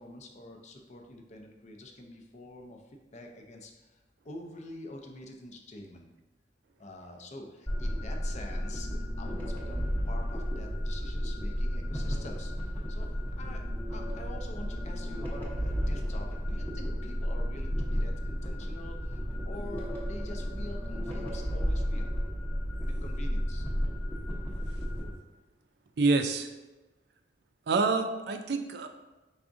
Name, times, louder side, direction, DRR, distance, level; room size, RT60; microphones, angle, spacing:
voice 1, 0.0-4.0 4.2-6.1 6.8-13.1 13.4-13.6 13.9-22.2 22.8-23.6, left 1 dB, 40° left, 2 dB, 0.5 m, -46 dB
sound 1, 7.7-25.1, equal, 10° left, 0.8 m, -32 dB
voice 2, 26.0-26.5 27.7-28.9, right 3 dB, 65° right, 6 dB, 0.4 m, -27 dB
4.9 x 3.4 x 2.6 m, 1.1 s
head